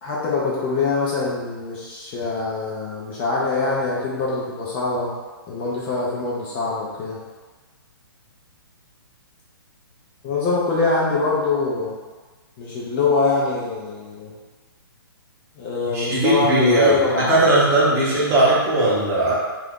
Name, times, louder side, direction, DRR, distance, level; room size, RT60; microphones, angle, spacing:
voice 1, 0.0-5.1 5.5-7.2 10.2-12.0 12.6-14.3 15.6-17.5, left 3 dB, 25° left, -5 dB, 0.5 m, -24 dB
voice 2, 15.9-19.3, right 1 dB, 20° right, -7 dB, 0.8 m, -18 dB
2.6 x 2.4 x 3.5 m, 1.3 s
hypercardioid pair, 145°, 13 cm